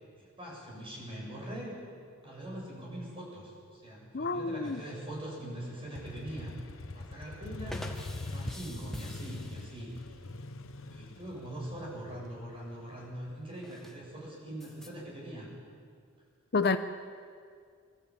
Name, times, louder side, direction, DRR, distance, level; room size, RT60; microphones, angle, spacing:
voice 1, 0.2-1.8 2.2-7.8 8.2-9.9 10.9-15.5, right 1 dB, 25° right, -3 dB, 7.8 m, -42 dB
voice 2, 4.1-4.8 16.5-16.8, left 4 dB, 50° left, 9 dB, 0.7 m, -28 dB
sound 1, 4.6-5.1 7.6-10.3 13.5-14.0 14.6-14.9, left 1 dB, ahead, 1.4 m, -45 dB
Motorcycle, 6.0-13.6, left 2 dB, 70° left, 0.9 m, -43 dB
24.0 x 13.5 x 8.8 m, 2.2 s
head